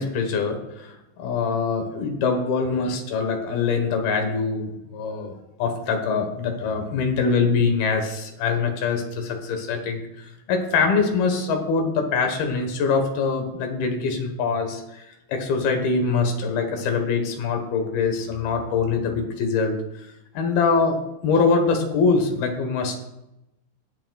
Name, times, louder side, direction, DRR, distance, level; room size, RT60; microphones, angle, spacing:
voice 1, 0.0-19.8 20.3-21.0 21.2-23.0, left 4 dB, 70° left, 4 dB, 2.6 m, -24 dB
19.5 x 8.6 x 2.3 m, 0.90 s
omnidirectional pair, 5.6 m